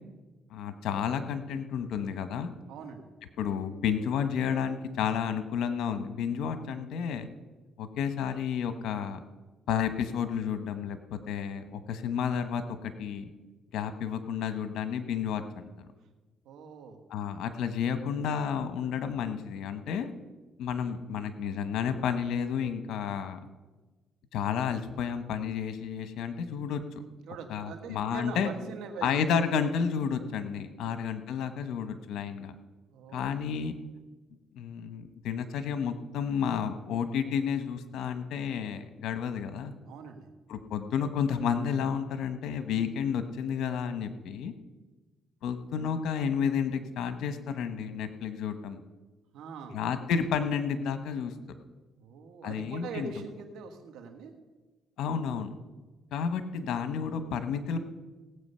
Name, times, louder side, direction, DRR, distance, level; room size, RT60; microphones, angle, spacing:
voice 1, 0.5-2.5 3.4-7.3 7.8-9.2 9.7-13.3 13.7-15.9 17.1-20.1 20.6-23.4 24.3-26.8 27.5-28.5 29.0-32.5 33.1-33.7 34.5-39.7 40.5-44.5 45.4-48.8 49.7-51.3 52.4-53.1 55.0-55.5 56.1-57.8, left 7 dB, 80° left, 10 dB, 1.1 m, -31 dB
voice 2, 2.7-3.1 16.4-17.0 27.3-29.2 30.9-31.1 32.9-33.4 39.8-40.3 49.3-49.8 52.0-54.3, right 5 dB, 85° right, 6 dB, 1.6 m, -43 dB
17.5 x 8.1 x 5.6 m, 1.2 s
cardioid pair, 90°, 0 cm